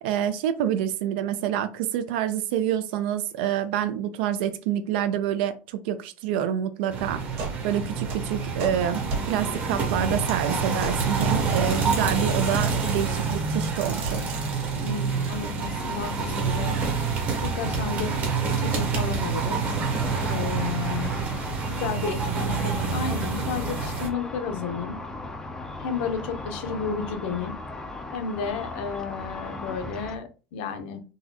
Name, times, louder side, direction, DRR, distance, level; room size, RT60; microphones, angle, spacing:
voice 1, 0.0-7.2 7.6-14.4, right 10 dB, 80° right, 11 dB, 0.4 m, -27 dB
sound 1, 6.9-24.1, right 4 dB, 30° right, 0.8 m, -27 dB
sound 2, 7.4-7.6 7.9-9.3 10.8-11.0 12.3-12.6 13.9-14.2, right 3 dB, 50° right, 1.3 m, -33 dB
voice 2, 14.8-16.9 17.4-18.2 18.5-19.7 20.3-21.2 21.7-25.0 25.8-27.6 28.1-31.0, left 5 dB, 80° left, 7 dB, 0.7 m, -32 dB
Car / Traffic noise roadway noise / Engine, 19.6-30.2, left 2 dB, 10° left, 0.3 m, -37 dB
4.0 x 2.3 x 2.8 m, 0.35 s
cardioid pair, 170°, 6 cm